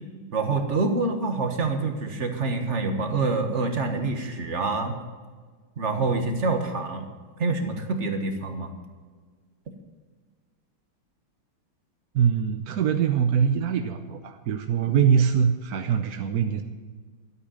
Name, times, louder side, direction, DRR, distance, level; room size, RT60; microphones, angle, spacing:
voice 1, 0.3-5.0 5.8-7.1 7.4-8.7, right 3 dB, 35° right, 5 dB, 1.5 m, -26 dB
voice 2, 12.1-16.6, right 7 dB, 65° right, 6 dB, 0.9 m, -23 dB
13.0 x 8.4 x 7.7 m, 1.5 s
omnidirectional pair, 2.4 m